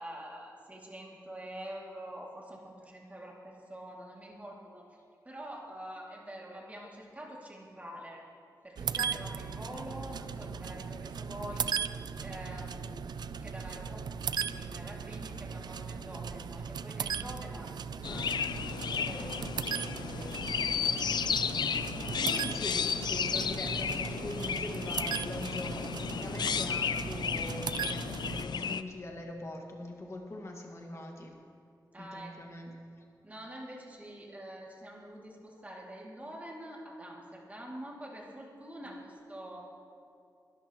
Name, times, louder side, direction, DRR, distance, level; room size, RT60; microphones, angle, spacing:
voice 1, 0.0-4.9 5.2-8.2 8.6-11.8 12.2-14.0 14.4-20.6 31.9-32.3 33.2-39.6, right 1 dB, 20° right, -3 dB, 2.4 m, -46 dB
sound 1, 8.8-28.4, right 6 dB, 75° right, 0.4 m, -38 dB
Chirp tweet, 18.0-28.8, left 7 dB, 90° left, 0.4 m, -33 dB
voice 2, 22.1-31.4 32.0-32.7, left 2 dB, 40° left, 1 dB, 1.8 m, -42 dB
22.0 x 12.0 x 3.0 m, 2.4 s
wide cardioid pair, 140°, 7 cm